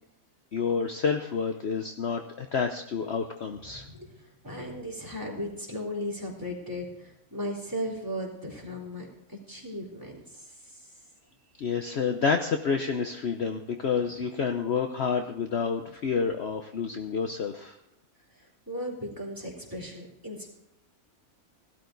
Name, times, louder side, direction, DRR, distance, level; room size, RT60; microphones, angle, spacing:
voice 1, 0.5-3.9 11.6-17.8, left 5 dB, 55° left, 6 dB, 1.0 m, -29 dB
voice 2, 3.7-10.4 14.0-14.1 18.7-20.5, equal, 15° right, -3 dB, 3.5 m, -36 dB
16.5 x 12.5 x 3.9 m, 0.84 s
omnidirectional pair, 1.5 m